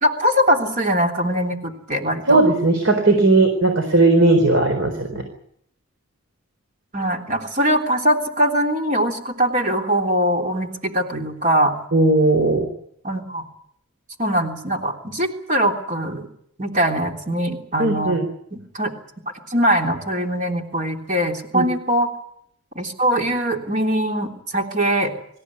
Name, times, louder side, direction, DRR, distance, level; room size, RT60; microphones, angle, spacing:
voice 1, 0.0-2.4 6.9-11.7 13.0-13.4 14.2-16.3 16.6-18.2 18.5-18.9 19.5-22.1 22.7-25.1, equal, 35° right, 2 dB, 3.4 m, -22 dB
voice 2, 2.3-5.2 11.9-12.7 17.8-18.2 21.5-21.6, right 2 dB, 60° right, 5 dB, 4.2 m, -17 dB
26.0 x 15.0 x 9.8 m, 0.70 s
head